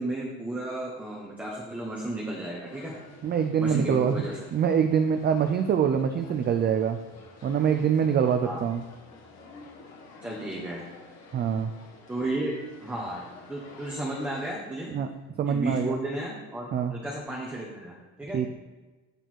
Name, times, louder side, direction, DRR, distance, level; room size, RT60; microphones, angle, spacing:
voice 1, 0.0-2.9 3.6-4.4 8.4-8.6 10.2-10.8 12.1-12.5 12.8-14.9 15.5-18.4, right 1 dB, 5° right, -3 dB, 1.1 m, -33 dB
sound 1, 2.6-14.5, left 3 dB, 50° left, 2.0 m, -50 dB
voice 2, 3.2-4.2 4.5-7.0 7.4-8.8 11.3-11.7 14.9-15.1 15.4-16.0 16.7-16.9 18.3-18.5, right 7 dB, 30° right, 8 dB, 0.4 m, -24 dB
8.0 x 6.7 x 4.5 m, 1.3 s
cardioid pair, 150°, 35 cm